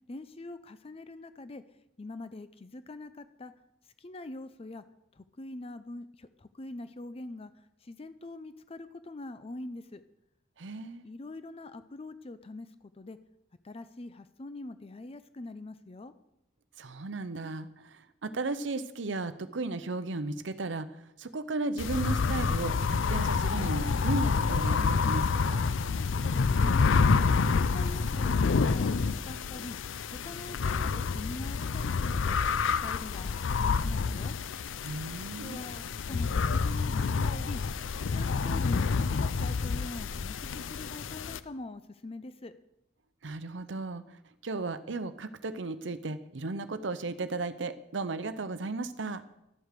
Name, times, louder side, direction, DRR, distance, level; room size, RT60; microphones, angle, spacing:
voice 1, 0.1-1.6 2.0-3.5 3.8-4.8 5.1-10.0 11.0-13.2 13.6-16.1 26.2-26.9 27.2-29.8 30.1-32.4 32.8-34.4 35.4-37.6 38.1-42.5, left 2 dB, 30° left, 12 dB, 0.5 m, -44 dB
voice 2, 10.6-11.0 16.8-25.6 34.8-35.6 43.2-49.2, right 3 dB, 70° right, 11 dB, 0.7 m, -35 dB
sound 1, 21.8-41.4, left 5 dB, 80° left, 0.5 m, -28 dB
12.0 x 7.9 x 6.7 m, 0.85 s
head